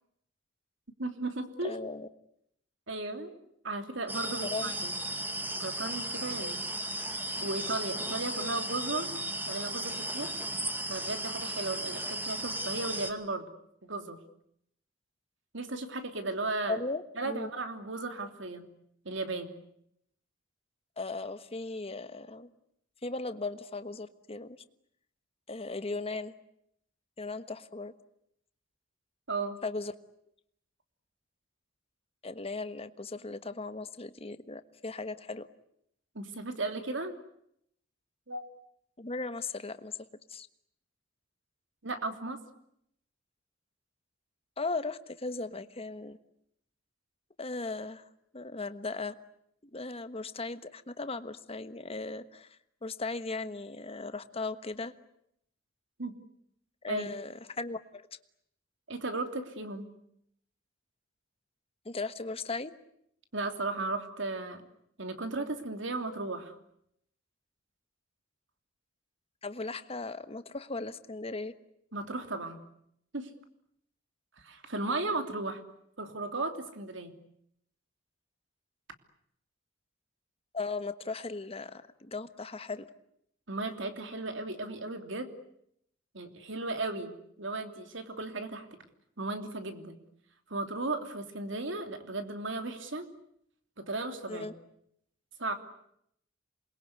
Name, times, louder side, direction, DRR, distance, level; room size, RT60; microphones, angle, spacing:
voice 1, 1.0-1.8 2.9-3.3 3.6-4.9 5.5-6.6 7.4-10.3 10.9-13.5 13.8-14.2 15.5-16.8 17.2-18.7 19.0-19.5 29.3-29.6 36.1-37.2 38.3-38.5 41.8-42.4 56.0-56.1 56.9-57.1 58.9-59.9 63.3-64.6 65.0-66.5 71.9-72.6 73.1-73.3 74.4-75.6 76.0-77.2 83.5-85.3 86.1-88.7 89.2-90.0 90.5-93.0 93.8-94.5 95.4-95.5, right 2 dB, 65° right, 7 dB, 3.1 m, -35 dB
voice 2, 1.6-2.1 4.4-4.7 16.7-17.5 21.0-22.5 23.0-24.6 25.5-26.3 27.2-27.9 29.6-29.9 32.2-35.5 39.0-39.9 40.3-40.5 44.6-46.2 47.4-48.0 48.3-49.1 49.6-54.9 56.8-58.1 61.8-62.7 69.4-71.5 80.5-82.9 94.3-94.5, left 3 dB, 30° left, 11 dB, 1.4 m, -37 dB
sound 1, 4.1-13.1, right 1 dB, 10° right, 2.2 m, -35 dB
28.0 x 22.0 x 9.7 m, 0.73 s
head